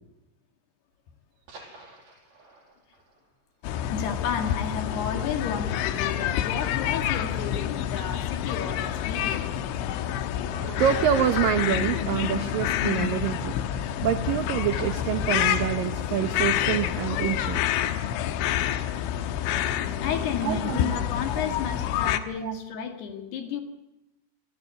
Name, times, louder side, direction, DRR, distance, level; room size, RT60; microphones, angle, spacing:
sound 1, 1.2-4.8 5.1-5.2 5.6-5.8 6.1-6.2 7.1-7.5 8.7-8.9 9.8-9.9 11.3-14.1 14.3-17.5 17.9-18.0, right 2 dB, 55° right, 6.8 m, -51 dB
sound 2, 3.6-22.2, left 11 dB, 85° left, 3.5 m, -28 dB
voice 1, 3.9-9.5 20.0-23.6, left 6 dB, 65° left, 5 dB, 3.7 m, -32 dB
voice 2, 10.4-17.6 20.4-21.0 22.4-22.5, right 10 dB, 80° right, 9 dB, 2.0 m, -27 dB
27.0 x 19.5 x 8.3 m, 0.94 s
omnidirectional pair, 5.4 m